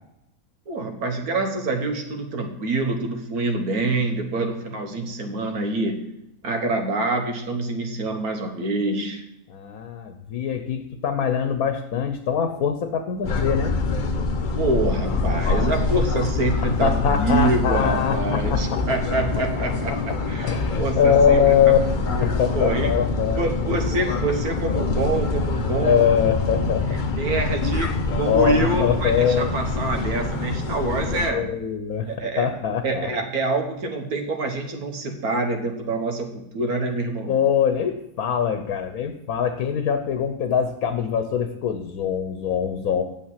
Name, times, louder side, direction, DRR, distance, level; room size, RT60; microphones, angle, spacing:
voice 1, 0.7-6.1 6.4-9.2 14.6-21.6 22.1-23.0 23.4-26.2 26.9-31.5 32.0-32.5 32.8-37.4, right 3 dB, 75° right, 4 dB, 1.9 m, -26 dB
voice 2, 9.5-13.7 16.8-18.8 20.4-21.8 22.4-23.4 24.7-24.8 25.8-27.0 28.2-29.5 31.1-32.1 32.4-33.1 37.3-43.0, left 8 dB, 75° left, 8 dB, 1.3 m, -23 dB
sound 1, 13.2-31.3, left 3 dB, 40° left, 0.8 m, -25 dB
8.9 x 7.2 x 7.4 m, 0.82 s
omnidirectional pair, 1.6 m